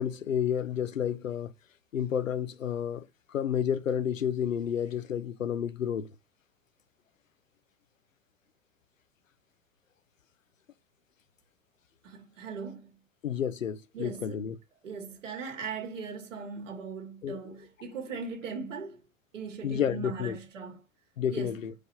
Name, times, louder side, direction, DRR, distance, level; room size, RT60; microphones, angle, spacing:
voice 1, 0.0-1.5 1.9-6.1 13.2-14.6 17.2-17.6 19.6-20.4 21.2-21.7, left 8 dB, 80° left, 0.7 m, -30 dB
voice 2, 12.0-13.0 13.9-14.5 14.8-19.0 19.3-20.8 21.3-21.6, right 5 dB, 70° right, 2.3 m, -39 dB
5.4 x 5.0 x 5.6 m
figure-of-eight pair, 85°, 39 cm